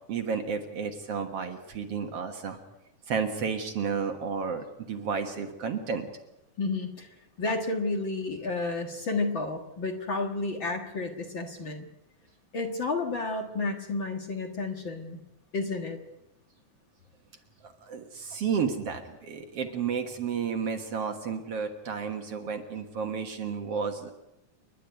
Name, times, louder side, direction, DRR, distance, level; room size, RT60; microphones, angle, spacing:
voice 1, 0.1-2.6 3.1-6.1 17.6-24.1, right 6 dB, 55° right, 5 dB, 2.3 m, -32 dB
voice 2, 6.6-7.1 7.4-11.9 12.5-15.2 15.5-16.0, left 3 dB, 45° left, 3 dB, 2.1 m, -31 dB
29.0 x 11.5 x 9.3 m, 0.94 s
omnidirectional pair, 3.6 m